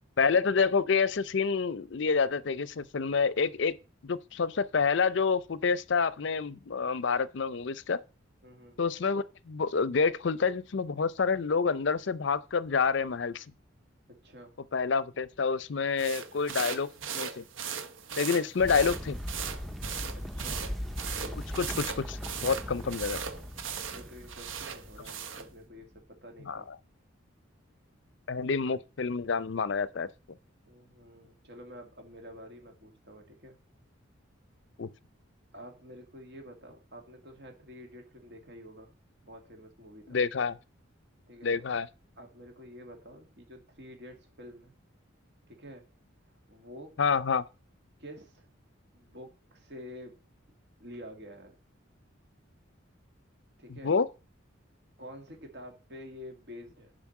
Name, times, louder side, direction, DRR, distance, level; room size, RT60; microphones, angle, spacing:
voice 1, 0.2-3.8 4.0-8.0 8.8-13.4 14.7-17.4 18.2-19.2 21.3-23.2 26.5-26.8 28.3-30.1 34.8-34.9 40.1-40.6 41.4-41.9 47.0-47.5 53.7-54.1, left 5 dB, 60° left, 0.5 m, -28 dB
voice 2, 8.4-8.8 14.2-14.6 18.4-18.5 20.3-20.7 23.9-26.7 30.6-33.6 35.5-38.9 39.2-40.2 41.3-41.6 42.2-44.7 45.5-45.9 46.3-46.9 48.0-48.5 48.9-50.2 50.8-51.6 53.6-53.9 55.0-56.9, equal, 55° right, 2.3 m, -48 dB
sound 1, 16.0-25.5, right 7 dB, 70° right, 0.9 m, -38 dB
sound 2, 18.6-26.0, equal, ahead, 0.6 m, -40 dB
7.3 x 5.2 x 7.2 m
head